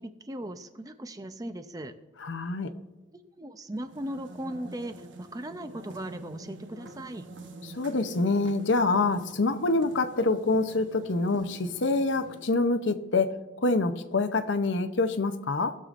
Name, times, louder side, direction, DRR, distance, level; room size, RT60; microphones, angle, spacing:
voice 1, 0.0-1.9 3.1-7.2, right 1 dB, 20° right, 9 dB, 0.5 m, -38 dB
voice 2, 2.2-2.7 7.7-13.4 13.6-15.8, left 3 dB, 70° left, 9 dB, 0.7 m, -26 dB
sound 1, 3.7-12.7, right 2 dB, 70° right, 1.0 m, -47 dB
19.5 x 6.8 x 2.5 m, 1.2 s
head